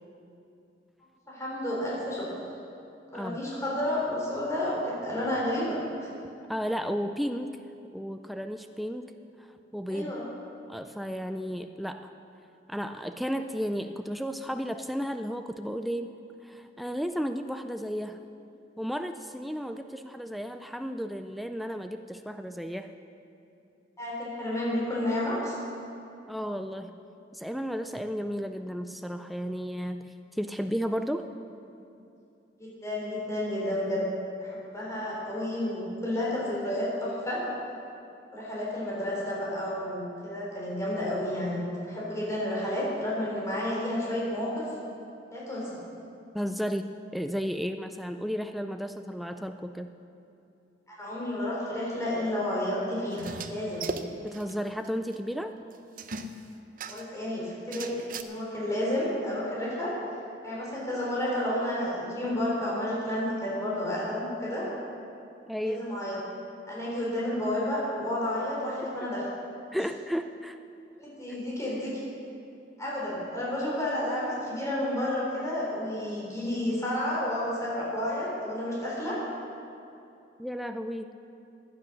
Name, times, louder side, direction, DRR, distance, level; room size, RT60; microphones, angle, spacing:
voice 1, 1.3-2.3 3.1-6.1 9.9-10.2 24.0-25.6 32.6-34.0 34.4-37.4 38.3-44.7 45.3-45.8 50.9-53.9 56.9-59.9 60.4-64.7 65.6-66.2 66.7-69.2 71.0-72.0 72.8-79.2, left 1 dB, 15° left, -6 dB, 4.3 m, -31 dB
voice 2, 6.5-7.6 7.9-9.1 9.4-9.5 9.7-10.2 10.7-12.1 12.7-16.1 16.4-18.2 18.8-22.9 26.3-27.0 27.3-31.3 46.3-50.0 54.2-55.5 65.5-65.9 69.7-70.6 80.4-81.1, equal, ahead, 7 dB, 0.3 m, -33 dB
sound 1, 53.1-54.5 54.8-54.9 55.1-55.2 56.0-57.2 57.7-58.2, right 3 dB, 50° right, 0.7 m, -37 dB
15.5 x 10.0 x 6.3 m, 2.7 s
head